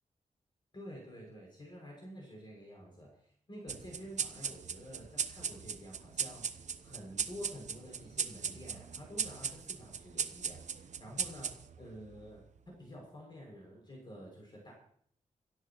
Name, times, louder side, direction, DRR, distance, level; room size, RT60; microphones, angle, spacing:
voice 1, 0.7-14.7, equal, 35° left, -1 dB, 6.4 m, -49 dB
sound 1, 3.7-12.6, right 7 dB, 60° right, 0.8 m, -39 dB
28.0 x 13.0 x 3.1 m, 0.63 s
wide cardioid pair, 135°, 13 cm